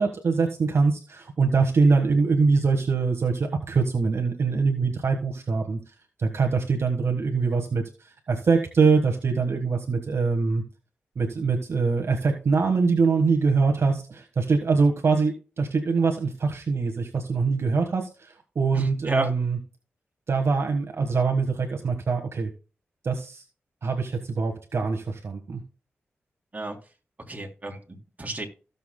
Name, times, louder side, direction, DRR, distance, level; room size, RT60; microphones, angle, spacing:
voice 1, 0.0-5.8 6.2-10.6 11.1-19.6 20.3-22.5 23.0-23.4 23.8-25.6, right 4 dB, 65° right, 3 dB, 1.5 m, -23 dB
voice 2, 18.7-19.3 26.5-26.8 27.3-28.5, right 2 dB, 35° right, 1 dB, 3.1 m, -31 dB
17.0 x 7.1 x 2.2 m, 0.34 s
cardioid pair, 45°, 5 cm